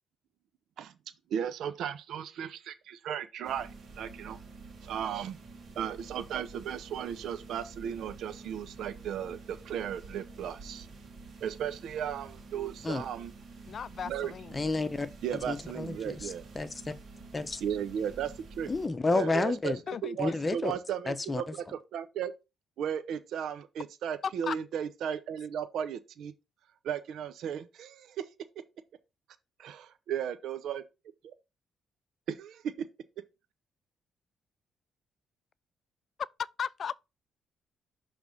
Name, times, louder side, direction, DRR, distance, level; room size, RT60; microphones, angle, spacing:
voice 1, 1.3-4.4 4.8-5.4 5.8-10.9 11.4-13.3 14.1-14.3 15.2-16.4 17.6-18.7 19.1-19.7 20.0-22.3 22.8-26.3 26.8-28.3 29.6-30.8 31.2-31.3 32.3-32.6, right 9 dB, 75° right, 0.6 m, -35 dB
sound 1, 3.4-18.9, right 3 dB, 55° right, 2.0 m, -49 dB
voice 2, 13.7-14.6 19.9-20.4 24.2-24.6 36.4-37.0, left 7 dB, 50° left, 0.3 m, -36 dB
voice 3, 14.5-16.9 17.3-17.6 18.7-19.8 20.2-20.7 21.1-21.5, left 3 dB, 25° left, 0.9 m, -31 dB
6.0 x 3.4 x 5.4 m
cardioid pair, 90°, 0 cm